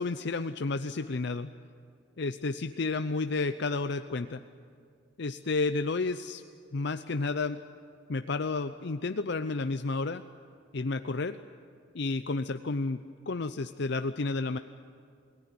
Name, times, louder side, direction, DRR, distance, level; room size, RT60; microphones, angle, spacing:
voice 1, 0.0-1.5 2.2-4.4 5.2-6.4 6.7-7.6 8.1-10.2 10.7-11.4 11.9-14.6, left 3 dB, 55° left, 10 dB, 0.6 m, -31 dB
28.0 x 18.0 x 9.6 m, 2.2 s
head